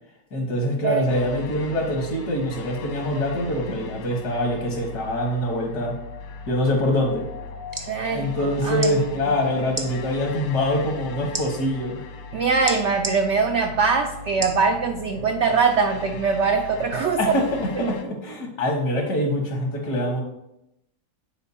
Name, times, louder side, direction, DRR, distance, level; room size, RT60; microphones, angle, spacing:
voice 1, 0.3-5.9 6.5-7.2 8.1-12.0 17.2-20.2, left 1 dB, 70° left, 1 dB, 1.9 m, -24 dB
sound 1, 1.1-18.0, left 4 dB, 85° left, 1.3 m, -39 dB
sound 2, 7.5-7.9 8.7-8.9 9.7-9.9 11.3-11.5 12.7-13.2 14.4-14.6 15.2-15.3, right 2 dB, 30° right, 0.3 m, -29 dB
voice 2, 7.8-8.9 12.3-17.2 17.7-17.9, right 5 dB, 80° right, 4 dB, 0.6 m, -22 dB
10.0 x 4.4 x 2.8 m, 0.86 s
omnidirectional pair, 1.8 m